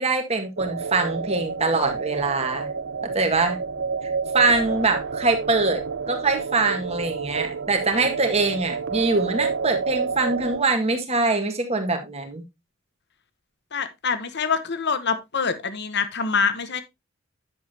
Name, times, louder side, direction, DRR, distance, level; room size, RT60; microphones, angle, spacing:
voice 1, 0.0-2.7 3.1-3.6 4.3-12.4, right 3 dB, 30° right, 1.8 m, -23 dB
sound 1, 0.6-10.6, right 5 dB, 60° right, 0.6 m, -29 dB
voice 2, 13.7-16.8, left 5 dB, 55° left, 1.1 m, -25 dB
9.7 x 7.4 x 2.8 m
head